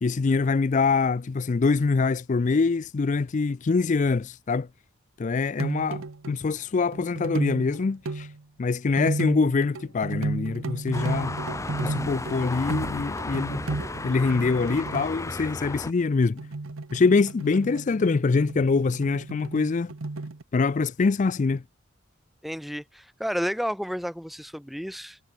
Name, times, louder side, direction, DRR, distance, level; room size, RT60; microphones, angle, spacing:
voice 1, 0.0-4.7 5.2-8.3 8.6-11.3 11.8-13.6 14.0-16.4 16.9-19.9 20.5-21.6, left 4 dB, 35° left, 0.4 m, -24 dB
sound 1, 5.6-6.4 6.9-8.4 9.0-15.1 16.4-20.4, right 2 dB, 80° right, 1.0 m, -33 dB
sound 2, 10.9-15.9, left 2 dB, 15° left, 1.0 m, -34 dB
voice 2, 22.4-25.2, equal, ahead, 1.5 m, -31 dB
head